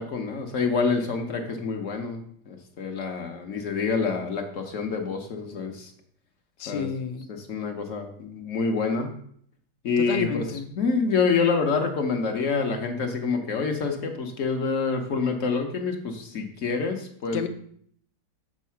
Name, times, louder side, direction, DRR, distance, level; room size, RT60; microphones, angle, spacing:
voice 1, 0.0-5.9 6.7-6.9 7.3-9.1 9.8-10.5 10.8-17.5, left 4 dB, 55° left, 4 dB, 1.1 m, -27 dB
voice 2, 6.6-7.3 10.0-10.6 17.3-17.5, left 6 dB, 90° left, 9 dB, 1.4 m, -30 dB
7.4 x 4.1 x 5.7 m, 0.63 s
omnidirectional pair, 1.8 m